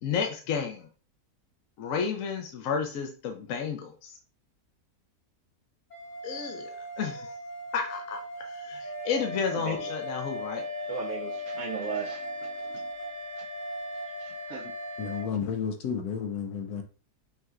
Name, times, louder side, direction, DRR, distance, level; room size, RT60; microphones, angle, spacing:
voice 1, 0.0-0.9 1.8-4.1 6.2-7.3 7.7-10.6, left 6 dB, 65° left, 1.0 m, -32 dB
sound 1, 5.9-15.2, right 2 dB, 45° left, 0.5 m, -40 dB
Wind instrument woodwind instrument, 8.8-15.3, left 4 dB, 35° right, 0.9 m, -39 dB
voice 2, 9.5-9.9 10.9-12.9 13.4-13.5 14.2-14.7, right 6 dB, 65° right, 0.8 m, -38 dB
voice 3, 15.0-16.8, left 6 dB, 85° left, 1.3 m, -32 dB
5.5 x 2.8 x 2.4 m
omnidirectional pair, 1.6 m